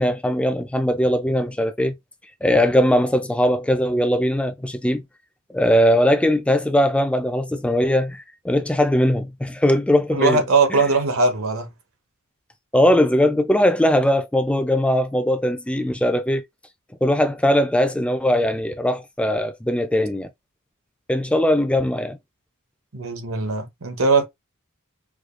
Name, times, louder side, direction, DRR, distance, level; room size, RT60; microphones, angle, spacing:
voice 1, 0.0-1.9 2.4-5.0 5.5-10.4 10.7-10.8 12.7-16.4 17.0-20.3 21.1-22.2, equal, 5° left, 0.4 m, -20 dB
voice 2, 10.1-11.7 22.9-24.2, right 3 dB, 65° right, 0.9 m, -20 dB
4.8 x 2.3 x 2.5 m
head